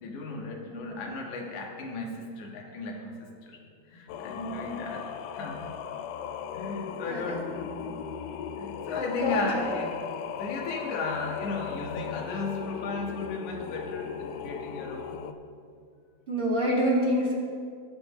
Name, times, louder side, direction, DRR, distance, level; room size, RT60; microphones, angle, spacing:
voice 1, 0.0-3.6 3.8-5.0 5.3-5.6 6.5-7.8 8.6-10.0 10.4-15.2, left 3 dB, 60° left, 0 dB, 2.7 m, -35 dB
voice 2, 0.7-1.0 7.0-7.3 9.1-9.4 16.3-17.3, equal, 25° right, -4 dB, 1.2 m, -26 dB
Singing, 4.1-15.3, left 8 dB, 85° left, 1.8 m, -37 dB
19.0 x 9.6 x 3.1 m, 2.3 s
omnidirectional pair, 4.3 m